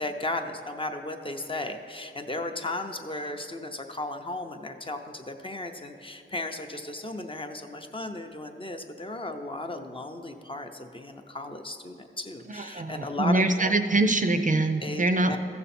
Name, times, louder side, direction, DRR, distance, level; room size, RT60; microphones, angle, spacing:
voice 1, 0.0-13.7 14.8-15.4, left 2 dB, 25° left, 5 dB, 0.6 m, -35 dB
voice 2, 12.5-15.4, right 2 dB, 40° right, 7 dB, 0.4 m, -24 dB
14.5 x 6.8 x 4.2 m, 2.6 s
wide cardioid pair, 115°, 21 cm